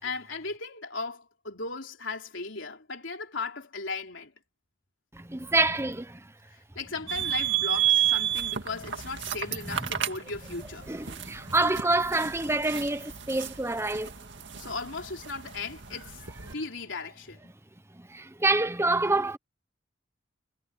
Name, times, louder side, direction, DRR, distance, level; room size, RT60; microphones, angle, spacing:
voice 1, 0.0-4.3 6.5-10.9 14.5-17.5, left 3 dB, 70° left, 3.8 m, -37 dB
voice 2, 5.1-6.3 10.9-14.1 17.9-19.4, right 2 dB, 15° right, 1.1 m, -27 dB
sound 1, 7.1-16.5, right 11 dB, 65° right, 2.1 m, -31 dB
head